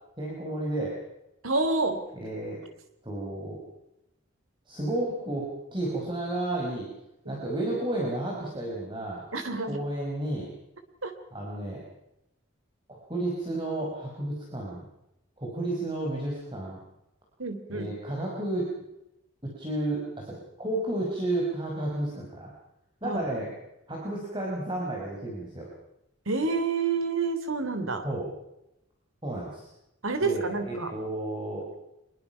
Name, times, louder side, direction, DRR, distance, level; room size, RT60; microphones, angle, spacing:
voice 1, 0.2-0.9 2.1-2.6 3.0-3.6 4.7-6.9 7.3-9.2 9.7-10.5 11.3-11.8 12.9-14.8 15.4-16.8 17.7-18.7 19.4-22.5 23.0-23.5 23.9-25.7 28.0-28.3 29.2-29.7 30.2-31.8, right 1 dB, 25° right, -3 dB, 5.1 m, -32 dB
voice 2, 1.4-2.0 7.3-7.4 9.3-9.8 11.0-11.1 17.4-17.9 23.0-23.2 26.2-28.0 30.0-30.9, right 3 dB, 85° right, 8 dB, 3.3 m, -28 dB
25.0 x 22.0 x 5.8 m, 0.87 s
head